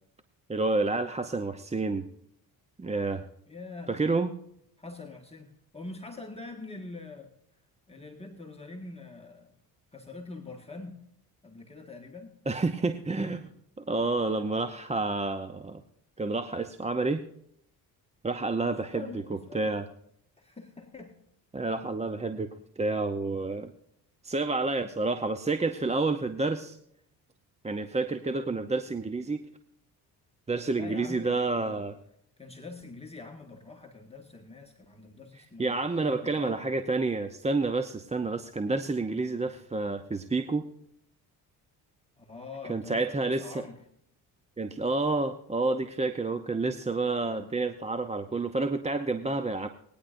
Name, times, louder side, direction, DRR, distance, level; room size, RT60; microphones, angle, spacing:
voice 1, 0.5-2.0 2.8-3.2 3.9-4.3 12.5-13.5 13.8-15.8 16.2-17.2 18.2-19.0 19.3-19.9 21.5-22.5 22.8-23.7 24.2-26.8 27.6-29.4 30.5-31.9 35.6-40.6 42.7-43.6 44.6-49.7, right 3 dB, 15° right, 9 dB, 0.8 m, -29 dB
voice 2, 3.5-3.9 4.8-7.3 7.9-9.5 9.9-11.0 11.4-12.4 18.9-19.8 20.4-21.2 30.5-31.9 32.4-36.7 42.2-43.8, left 3 dB, 15° left, 1 dB, 1.7 m, -44 dB
20.0 x 10.0 x 2.6 m, 0.70 s
supercardioid pair, 75°, 39 cm